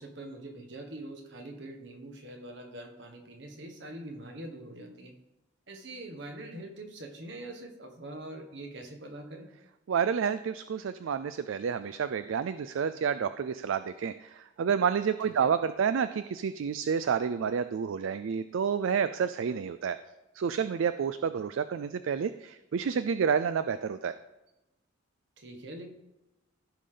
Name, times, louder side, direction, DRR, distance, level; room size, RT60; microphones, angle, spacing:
voice 1, 0.0-5.1 5.7-9.5 15.2-15.5 25.4-25.9, right 1 dB, 60° right, 4 dB, 1.4 m, -43 dB
voice 2, 9.9-20.0 20.3-24.1, right 7 dB, 75° right, 12 dB, 0.4 m, -29 dB
15.0 x 5.1 x 3.8 m, 0.98 s
head